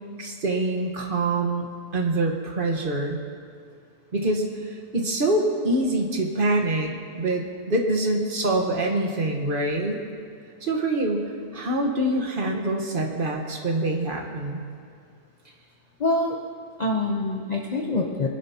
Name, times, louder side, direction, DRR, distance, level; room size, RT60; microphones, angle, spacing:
voice 1, 0.2-1.7 1.9-3.2 4.1-10.0 10.6-14.6, right 2 dB, 35° right, 1 dB, 1.4 m, -25 dB
voice 2, 16.0-16.4 16.8-18.3, left 2 dB, 35° left, 1 dB, 0.7 m, -25 dB
23.5 x 10.0 x 2.9 m, 2.2 s
omnidirectional pair, 1.6 m